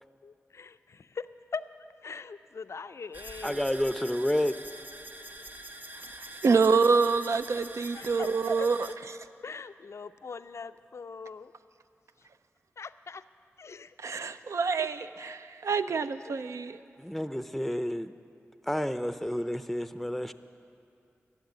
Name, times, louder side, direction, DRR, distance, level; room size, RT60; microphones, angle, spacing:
voice 1, 0.2-1.3 1.5-1.6 2.0-3.6 7.9-8.3 8.6-8.7 9.4-11.5 12.8-13.2 13.6-14.0 14.8-14.9 16.3-16.4 17.7-17.8, left 5 dB, 65° left, 12 dB, 0.4 m, -41 dB
sound 1, 3.1-9.0, right 1 dB, 35° right, 0.7 m, -45 dB
voice 2, 3.4-4.6 17.0-18.1 18.7-20.3, equal, ahead, 11 dB, 0.5 m, -30 dB
voice 3, 6.2-9.2 14.0-16.8, right 4 dB, 75° right, 11 dB, 0.4 m, -27 dB
13.0 x 7.3 x 9.5 m, 2.6 s
cardioid pair, 50°, 5 cm